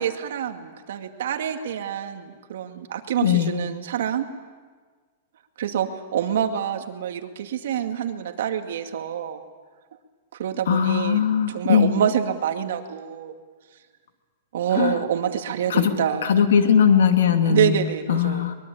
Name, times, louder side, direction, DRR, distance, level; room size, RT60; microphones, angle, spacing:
voice 1, 0.0-4.3 5.6-9.4 10.4-13.3 14.5-16.2 17.4-18.5, right 9 dB, 65° right, 5 dB, 2.2 m, -26 dB
voice 2, 3.2-3.5 10.7-11.9 14.7-15.0 15.7-15.9 16.2-17.7 18.1-18.5, left 7 dB, 90° left, 5 dB, 2.7 m, -19 dB
24.0 x 22.0 x 8.6 m, 1.5 s
supercardioid pair, 180°, 0 cm